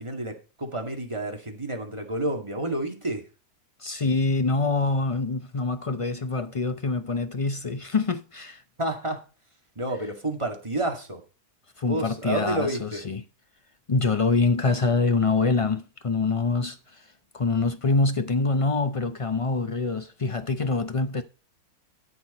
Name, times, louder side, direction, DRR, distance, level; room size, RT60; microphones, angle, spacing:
voice 1, 0.0-3.2 8.8-9.2 9.8-11.2 11.9-13.0, right 1 dB, 20° right, 2.1 m, -30 dB
voice 2, 3.8-8.6 11.8-13.2 13.9-17.0 17.3-21.2, left 3 dB, 60° left, 0.3 m, -25 dB
13.5 x 6.3 x 4.2 m
omnidirectional pair, 1.7 m